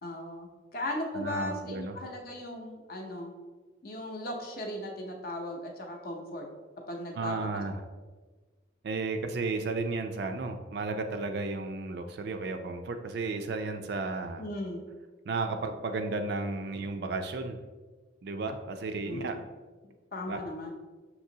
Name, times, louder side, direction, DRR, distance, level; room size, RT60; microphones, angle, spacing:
voice 1, 0.0-3.3 3.8-6.5 6.9-7.6 14.4-14.8 19.0-19.3 20.1-20.7, left 1 dB, 50° left, 2 dB, 0.6 m, -37 dB
voice 2, 1.1-1.9 7.2-7.8 8.8-14.4 15.3-17.6 18.2-19.4 20.3-20.4, right 3 dB, 55° right, 7 dB, 0.4 m, -33 dB
6.0 x 2.9 x 2.7 m, 1.3 s
head